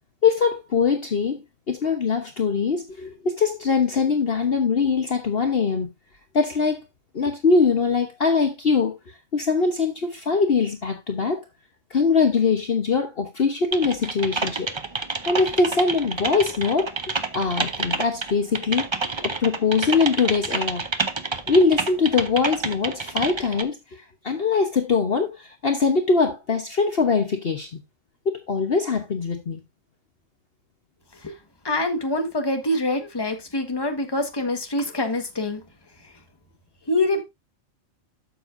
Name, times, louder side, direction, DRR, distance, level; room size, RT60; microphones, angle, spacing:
voice 1, 0.2-5.9 6.3-6.8 7.1-8.9 9.3-11.4 11.9-14.7 15.3-16.9 17.3-18.9 19.2-20.8 21.5-27.8 28.2-29.6, left 4 dB, 50° left, 1.3 m, -22 dB
Typing, 13.7-23.6, right 4 dB, 30° right, 0.6 m, -28 dB
voice 2, 31.6-35.6 36.9-37.2, left 2 dB, 20° left, 1.5 m, -25 dB
12.5 x 7.0 x 2.6 m
omnidirectional pair, 1.4 m